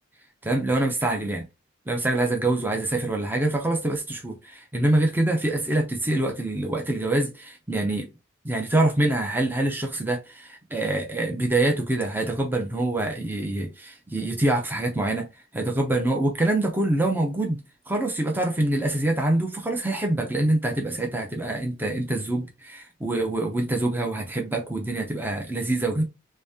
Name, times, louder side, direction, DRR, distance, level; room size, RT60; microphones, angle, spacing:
voice 1, 0.4-1.4 1.9-8.1 8.4-15.3 15.5-26.0, right 2 dB, 10° right, 0.5 m, -25 dB
3.2 x 2.9 x 3.4 m
head